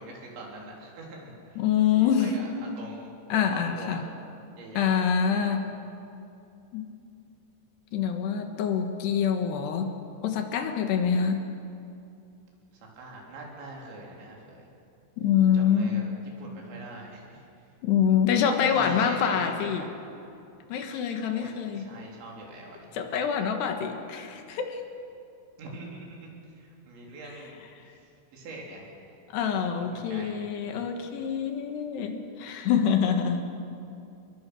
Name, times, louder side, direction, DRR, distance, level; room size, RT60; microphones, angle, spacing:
voice 1, 0.0-1.6 1.9-4.1 4.6-4.9 5.2-5.6 12.7-14.7 15.5-16.1 16.4-17.5 18.7-20.1 21.3-22.9 25.6-29.2 29.8-30.4, right 2 dB, 80° right, -1 dB, 6.0 m, -44 dB
voice 2, 1.6-2.3 3.3-4.0 4.8-5.8 6.7-6.9 7.9-9.9 10.2-11.5 15.2-16.0 17.8-19.9 20.7-21.9 22.9-24.8 29.3-33.5, left 7 dB, 70° left, 5 dB, 3.4 m, -25 dB
27.5 x 21.0 x 6.2 m, 2.6 s
omnidirectional pair, 5.2 m